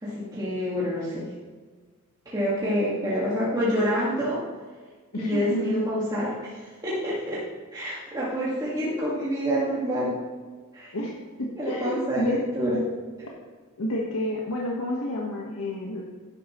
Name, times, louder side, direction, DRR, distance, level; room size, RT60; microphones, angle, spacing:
voice 1, 0.0-1.3 2.3-4.4 5.1-7.4 7.7-10.2 10.7-10.9 11.6-12.9, equal, 15° right, -8 dB, 1.9 m, -27 dB
voice 2, 5.1-5.9 10.9-12.5 13.3-13.4 13.8-16.0, left 1 dB, 90° left, -2 dB, 1.4 m, -30 dB
11.5 x 10.5 x 3.1 m, 1.5 s
head